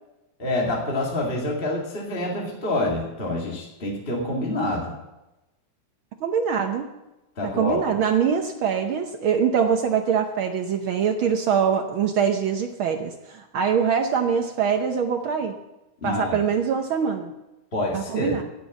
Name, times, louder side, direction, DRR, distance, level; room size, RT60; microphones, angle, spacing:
voice 1, 0.4-4.9 7.4-7.8 16.0-16.4 17.7-18.4, left 1 dB, 20° left, -1 dB, 2.1 m, -27 dB
voice 2, 6.2-6.9 7.6-15.5 16.0-17.3 17.9-18.4, right 7 dB, 75° right, 5 dB, 1.2 m, -23 dB
15.5 x 6.8 x 7.2 m, 0.98 s
omnidirectional pair, 3.3 m